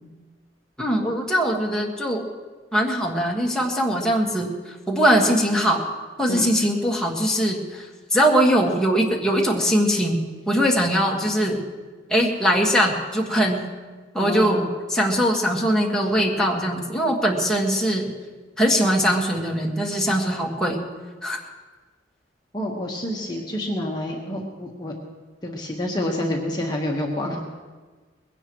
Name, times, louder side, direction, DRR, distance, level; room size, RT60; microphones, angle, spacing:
voice 1, 0.8-2.3 2.7-4.6 4.9-5.9 6.2-7.8 8.1-11.6 12.1-13.7 14.1-18.1 18.6-20.8 21.2-21.4, equal, 5° left, -3 dB, 1.7 m, -21 dB
voice 2, 14.2-14.7 20.5-21.0 22.5-24.9 25.4-27.4, left 1 dB, 25° left, -1 dB, 1.4 m, -28 dB
21.0 x 17.0 x 3.1 m, 1.4 s
head